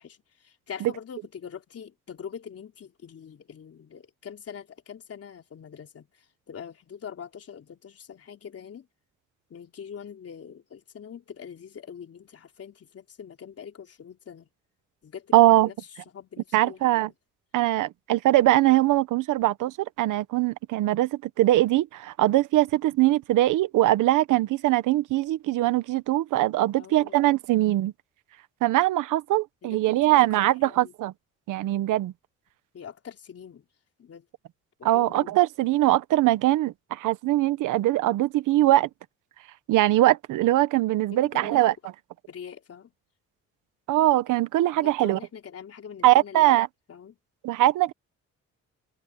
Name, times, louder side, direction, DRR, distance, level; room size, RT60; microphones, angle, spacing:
voice 1, 0.0-8.9 9.5-14.5 15.0-15.3 15.6-15.8 16.1-17.0 26.8-27.3 29.6-30.9 32.7-33.7 34.0-34.3 34.8-35.4 41.1-41.6 42.3-42.9 44.8-46.6 46.9-47.2, left 7 dB, 50° left, 3.8 m, -43 dB
voice 2, 15.3-15.7 16.5-17.1 17.5-27.9 28.6-31.1 31.5-32.1 34.8-38.9 39.7-41.7 43.9-45.2 46.0-46.7 47.4-47.9, right 15 dB, 90° right, 1.3 m, -22 dB
cardioid pair, 90°, 30 cm